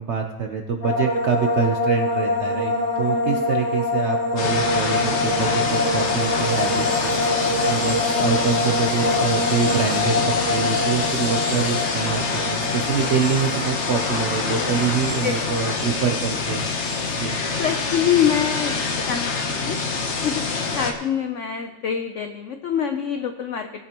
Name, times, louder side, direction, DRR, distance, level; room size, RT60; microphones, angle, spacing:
voice 1, 0.0-16.7 17.1-17.4, right 6 dB, 65° right, 3 dB, 0.7 m, -25 dB
sound 1, 0.8-16.0 16.3-17.0, left 2 dB, 15° right, 3.3 m, -25 dB
sound 2, 4.4-20.9, left 4 dB, 45° left, 1.1 m, -25 dB
voice 2, 17.6-19.8 20.2-23.9, left 9 dB, 75° left, 6 dB, 0.6 m, -25 dB
18.0 x 8.5 x 2.9 m, 1.2 s
omnidirectional pair, 2.0 m